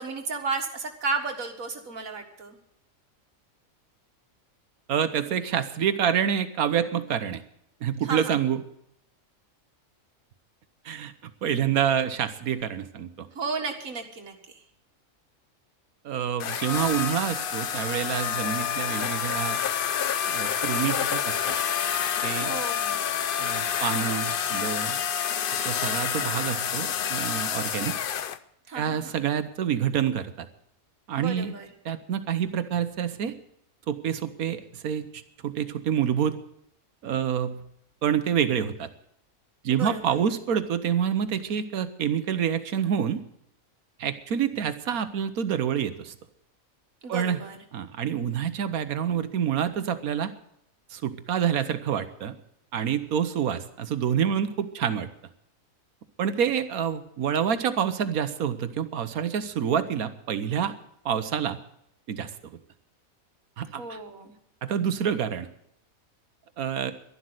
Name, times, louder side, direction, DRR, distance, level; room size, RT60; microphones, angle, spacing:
voice 1, 0.0-2.6 8.0-8.4 13.3-14.4 22.3-23.0 28.7-29.2 31.2-31.7 39.7-40.2 47.0-47.6 63.8-64.3, right 4 dB, 75° right, 4 dB, 2.2 m, -33 dB
voice 2, 4.9-7.4 7.8-8.6 10.8-11.1 11.4-13.3 16.0-19.6 20.3-21.6 22.2-22.6 23.4-25.0 25.6-28.0 28.7-30.5 31.1-31.5 31.8-33.4 33.9-36.4 37.0-37.6 38.0-38.9 39.6-43.2 44.0-46.1 47.1-47.4 47.7-50.3 50.9-52.3 52.7-55.1 56.2-60.7 61.0-61.6 62.1-62.3 63.6-64.0 64.6-65.5 66.6-66.9, right 8 dB, 90° right, 11 dB, 1.4 m, -27 dB
sound 1, 16.4-28.4, left 8 dB, 55° left, 0.6 m, -28 dB
12.0 x 11.5 x 7.8 m, 0.74 s
omnidirectional pair, 1.5 m